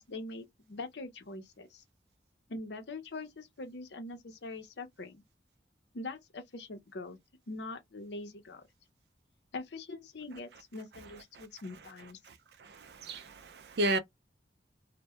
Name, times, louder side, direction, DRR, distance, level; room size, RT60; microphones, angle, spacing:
voice 1, 0.0-1.8 2.5-5.2 5.9-7.2 7.5-8.7 9.5-12.2, left 2 dB, 70° left, 0.6 m, -43 dB
voice 2, 12.6-14.0, right 1 dB, 65° right, 0.4 m, -33 dB
2.1 x 2.1 x 2.8 m
head